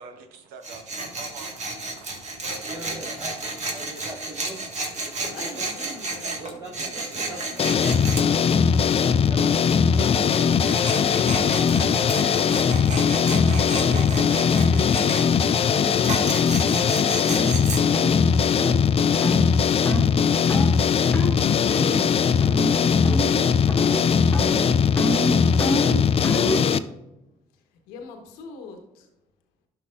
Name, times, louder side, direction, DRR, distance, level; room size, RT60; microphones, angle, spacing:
voice 1, 0.0-3.2, right 4 dB, 80° right, 7 dB, 0.9 m, -44 dB
Tools, 0.6-8.3 10.5-15.2 16.0-17.8, right 2 dB, 50° right, 1.7 m, -32 dB
voice 2, 2.7-3.4 3.7-4.6 5.0-5.7 6.4-8.7 9.3-9.5 9.8-10.6 10.9-11.4 11.7-12.9 13.8-17.2, right 1 dB, 30° right, -5 dB, 1.8 m, -41 dB
voice 3, 5.2-6.4 6.7-7.5 25.4-26.3 27.5-29.1, left 3 dB, 85° left, 4 dB, 1.1 m, -44 dB
sound 1, 7.6-26.8, left 6 dB, 40° left, 0.4 m, -20 dB
sound 2, 16.7-16.8 17.3-17.5 17.9-18.1 18.6-18.8 19.2-19.4 19.9-20.1 20.5-20.7 21.1-21.4 21.8-22.1 22.4-22.8 23.0-23.4 23.7-24.0 24.3-26.7, equal, 15° left, 1.5 m, -28 dB
11.5 x 5.6 x 2.4 m, 0.95 s
hypercardioid pair, 60°, 15 cm